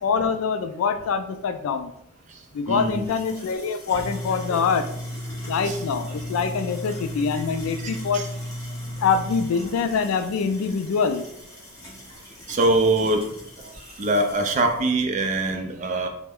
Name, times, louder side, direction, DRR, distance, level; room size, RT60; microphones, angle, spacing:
voice 1, 0.0-1.9 2.5-4.9 5.5-8.3 9.0-11.3, left 5 dB, 80° left, 10 dB, 0.3 m, -24 dB
sound 1, 2.7-3.4 4.0-6.2 6.6-7.4, right 1 dB, 35° left, 1.0 m, -46 dB
voice 2, 2.7-3.1 5.6-5.8 7.8-8.3 8.9-9.0 12.5-13.3 14.0-16.1, right 2 dB, 35° right, 4 dB, 0.3 m, -23 dB
sound 2, 2.8-14.8, equal, 15° left, 0.6 m, -36 dB
3.2 x 2.1 x 3.4 m, 0.76 s
head